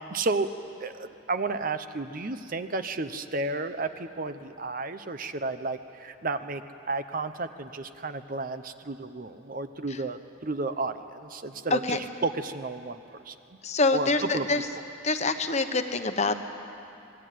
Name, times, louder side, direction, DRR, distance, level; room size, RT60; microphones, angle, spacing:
voice 1, 0.1-0.5 0.8-13.0 13.3-13.4 13.9-14.5, right 3 dB, 40° right, 10 dB, 0.9 m, -32 dB
voice 2, 13.6-14.7 15.0-16.4, left 3 dB, 35° left, 7 dB, 1.2 m, -26 dB
26.5 x 20.0 x 9.4 m, 2.7 s
head